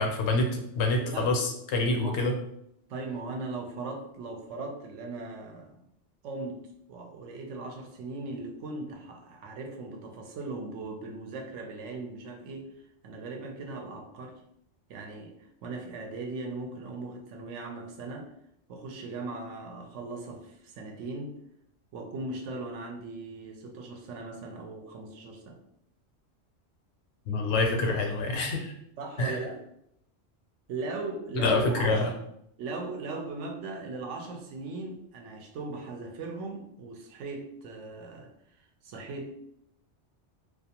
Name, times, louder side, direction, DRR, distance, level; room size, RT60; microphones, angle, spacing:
voice 1, 0.0-2.3 27.3-28.7 29.2-29.4 31.4-32.1, left 2 dB, 75° left, 3 dB, 0.8 m, -26 dB
voice 2, 1.0-1.4 2.0-2.2 2.9-5.8 6.2-6.6 6.9-12.7 13.0-14.4 14.9-15.3 15.6-18.3 18.7-21.4 21.9-25.6 29.0-29.6 30.7-32.2 32.6-38.3 38.6-39.4, right 3 dB, 85° right, 2 dB, 0.9 m, -38 dB
2.4 x 2.3 x 2.8 m, 0.74 s
omnidirectional pair, 1.2 m